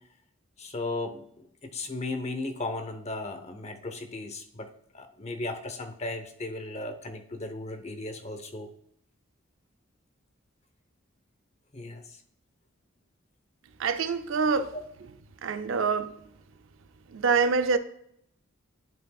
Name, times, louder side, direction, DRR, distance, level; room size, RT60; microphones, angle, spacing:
voice 1, 0.6-1.3 1.6-8.7 11.7-12.0 14.7-14.8, left 2 dB, 30° left, 0.8 m, -36 dB
voice 2, 13.8-14.7 15.4-16.2 17.1-17.8, right 5 dB, 75° right, 0.5 m, -25 dB
11.0 x 5.2 x 2.3 m
head